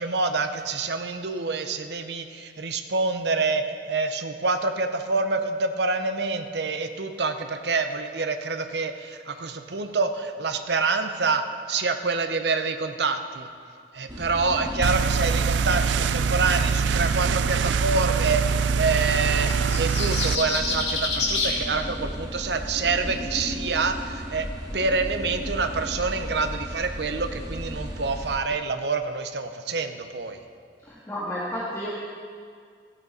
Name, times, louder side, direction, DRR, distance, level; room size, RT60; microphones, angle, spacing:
voice 1, 0.0-13.5 13.9-24.5 24.7-30.4, right 4 dB, 70° right, 7 dB, 0.8 m, -27 dB
sound 1, 14.1-28.4, equal, 25° right, 1.5 m, -34 dB
sound 2, 14.8-20.4, right 6 dB, 85° right, 0.4 m, -24 dB
sound 3, 19.5-21.6, left 3 dB, 75° left, 2.4 m, -27 dB
voice 2, 30.8-31.9, equal, 15° left, -8 dB, 1.7 m, -31 dB
16.0 x 8.7 x 4.2 m, 2.1 s
head